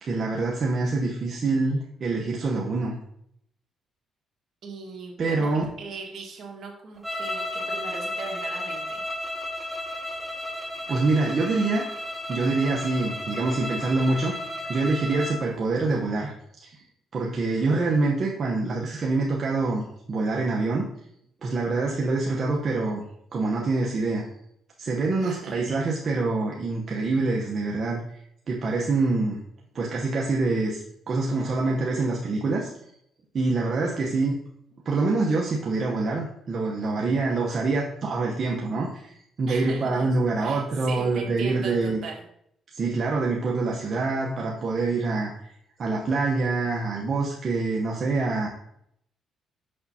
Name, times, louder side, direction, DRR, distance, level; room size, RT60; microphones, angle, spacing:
voice 1, 0.0-3.0 5.2-5.6 10.9-11.9 12.3-14.4 14.7-16.8 17.1-19.8 20.1-20.9 21.4-23.0 23.3-24.2 24.8-28.2 28.5-29.4 29.7-30.8 31.1-32.7 33.3-34.4 34.8-42.0 42.7-45.5 45.8-48.5, right 3 dB, 50° right, -2 dB, 0.9 m, -25 dB
voice 2, 4.6-9.0 25.2-25.5 39.5-40.1 40.4-42.2, right 4 dB, 65° right, 0 dB, 1.6 m, -39 dB
sound 1, 7.0-15.4, left 1 dB, 5° right, 1.1 m, -33 dB
6.5 x 5.9 x 2.8 m, 0.72 s
cardioid pair, 90°, 0 cm